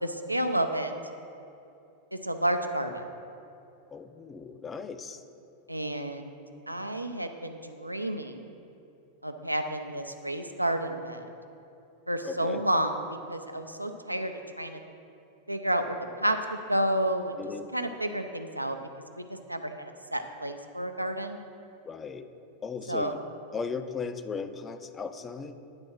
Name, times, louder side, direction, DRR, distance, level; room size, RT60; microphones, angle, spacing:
voice 1, 0.0-0.9 2.1-3.0 5.7-6.4 6.7-8.5 9.2-11.3 12.1-12.9 13.3-14.8 15.5-17.4 17.7-18.8 19.2-21.4 22.9-23.1, right 1 dB, 85° right, 7 dB, 0.5 m, -30 dB
voice 2, 3.9-5.2 12.2-12.6 17.4-17.7 21.8-22.3 22.6-23.2 23.5-25.5, left 5 dB, 20° left, 9 dB, 0.5 m, -37 dB
9.6 x 4.2 x 6.3 m, 2.7 s
figure-of-eight pair, 90°, 0 cm